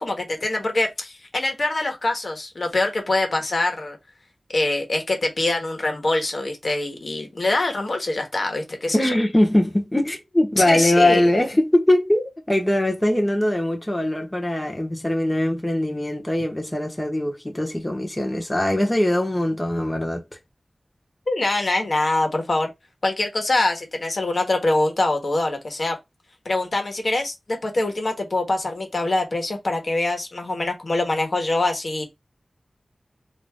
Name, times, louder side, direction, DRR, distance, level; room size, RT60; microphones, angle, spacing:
voice 1, 0.0-4.0 4.5-9.1 10.6-11.2 21.3-22.7 23.0-25.9 26.4-32.1, left 2 dB, 65° left, 1.4 m, -24 dB
voice 2, 8.9-20.2, left 1 dB, 20° left, 1.2 m, -21 dB
4.2 x 2.7 x 3.6 m
wide cardioid pair, 55°, 0 cm